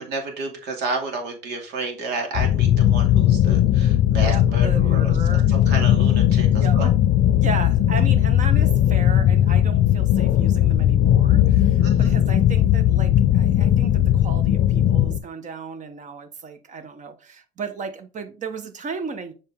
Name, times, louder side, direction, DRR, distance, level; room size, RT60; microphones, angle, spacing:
voice 1, 0.0-6.9 11.8-12.1, right 3 dB, 85° right, 2.6 m, -31 dB
sound 1, 2.3-15.2, left 11 dB, 60° left, 0.6 m, -18 dB
voice 2, 4.1-5.5 6.5-6.8 7.4-19.3, right 5 dB, 45° right, 1.3 m, -35 dB
7.2 x 5.1 x 3.6 m
cardioid pair, 110°, 17 cm